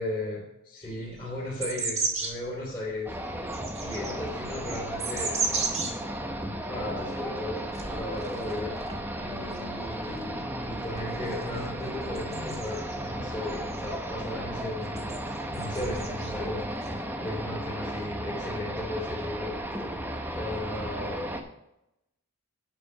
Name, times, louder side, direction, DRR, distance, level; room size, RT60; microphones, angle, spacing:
voice 1, 0.0-3.2 3.8-5.4 6.7-8.8 9.2-15.2 15.5-19.6 20.4-21.3, left 1 dB, 20° left, -9 dB, 3.3 m, -36 dB
sound 1, 0.9-2.4 3.0-5.9 6.4-6.5 6.8-7.0 7.7-9.0 9.3-13.1 13.5-14.1 14.9-17.0 17.3-18.0, right 4 dB, 30° right, 1.9 m, -35 dB
sound 2, 3.1-21.4, right 1 dB, 10° right, 0.9 m, -35 dB
11.5 x 5.0 x 5.7 m, 0.87 s
head